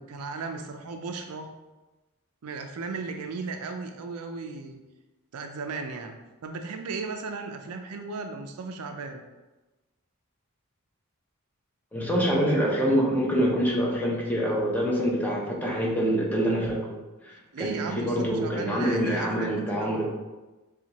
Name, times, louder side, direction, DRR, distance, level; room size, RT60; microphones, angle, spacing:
voice 1, 0.0-1.5 2.4-4.8 5.3-6.2 6.4-9.2 17.5-20.0, right 4 dB, 80° right, 5 dB, 0.5 m, -36 dB
voice 2, 11.9-17.0 17.2-20.1, equal, 10° left, -3 dB, 0.7 m, -25 dB
7.1 x 2.4 x 2.9 m, 1.1 s
head